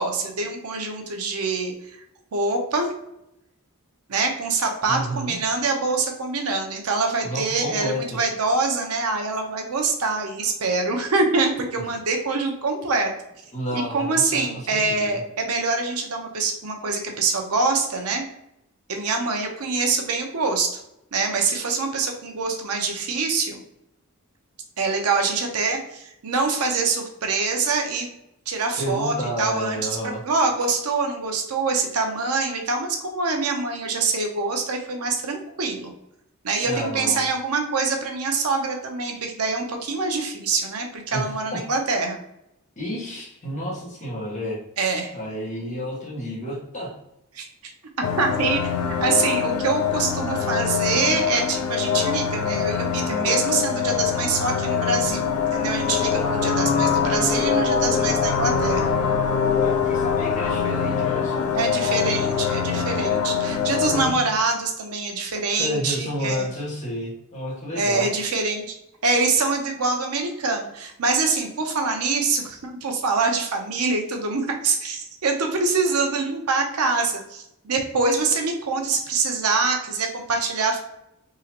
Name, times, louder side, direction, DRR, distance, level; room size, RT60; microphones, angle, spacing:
voice 1, 0.0-2.0 2.3-2.9 4.1-13.1 13.7-18.2 18.9-20.8 21.1-23.6 24.8-28.1 28.5-29.9 30.2-35.9 36.4-42.2 44.8-45.1 47.3-47.7 48.2-48.7 49.0-58.9 61.5-66.5 67.8-68.7 69.0-80.8, right 4 dB, 80° right, 3 dB, 0.7 m, -25 dB
voice 2, 4.8-5.3 7.2-8.0 13.5-15.2 28.8-30.2 36.6-37.2 41.1-41.6 42.8-44.6 45.1-46.9 59.6-61.5 63.8-64.2 65.6-68.3, equal, 35° left, -6 dB, 1.5 m, -31 dB
sound 1, 48.0-64.1, left 6 dB, 70° left, 0.4 m, -23 dB
3.8 x 2.9 x 2.9 m, 0.82 s
head